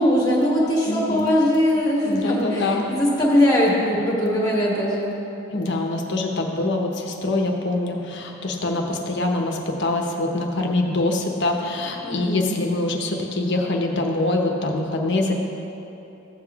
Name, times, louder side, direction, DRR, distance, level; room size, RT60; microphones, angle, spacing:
voice 1, 0.0-5.1 12.0-12.6, left 1 dB, 20° left, -5 dB, 1.5 m, -21 dB
voice 2, 0.9-1.3 2.0-2.9 5.5-15.3, left 2 dB, 55° left, 2 dB, 0.9 m, -24 dB
15.0 x 8.5 x 2.4 m, 3.0 s
head